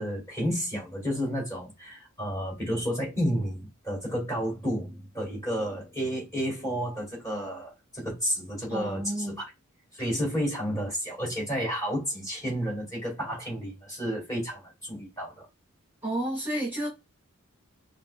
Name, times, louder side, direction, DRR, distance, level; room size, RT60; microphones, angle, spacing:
voice 1, 0.0-9.5 9.9-15.5, equal, 15° left, 2.5 m, -31 dB
voice 2, 8.7-9.3 16.0-16.9, right 1 dB, 10° right, 2.2 m, -31 dB
5.7 x 2.3 x 2.4 m
head